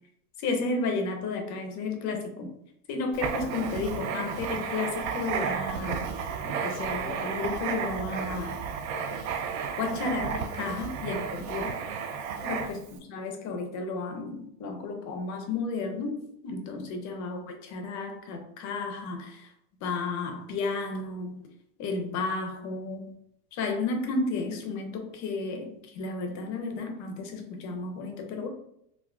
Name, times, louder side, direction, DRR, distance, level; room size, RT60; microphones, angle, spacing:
voice 1, 0.4-2.5 2.9-6.1 6.4-8.6 9.8-11.7 12.4-12.8 13.1-19.5 19.8-21.4 21.8-23.1 23.5-28.5, left 3 dB, 40° left, 4 dB, 0.6 m, -32 dB
Writing, 3.1-12.9, right 6 dB, 50° right, 0.5 m, -33 dB
3.4 x 2.4 x 2.2 m, 0.76 s
hypercardioid pair, 100°, 47 cm